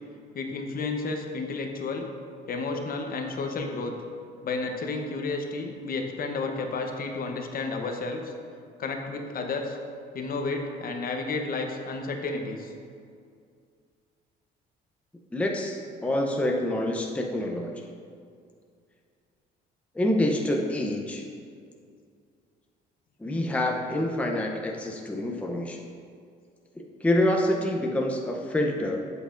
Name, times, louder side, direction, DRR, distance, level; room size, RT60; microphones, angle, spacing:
voice 1, 0.3-2.1 2.5-3.9 4.4-8.3 8.8-9.8 10.1-12.7, left 3 dB, 45° left, 3 dB, 0.9 m, -31 dB
voice 2, 15.3-17.7 19.9-21.3 23.2-25.8 26.7-29.0, left 1 dB, 5° left, 1 dB, 0.6 m, -27 dB
8.1 x 7.8 x 2.5 m, 2.3 s
cardioid pair, 95°, 20 cm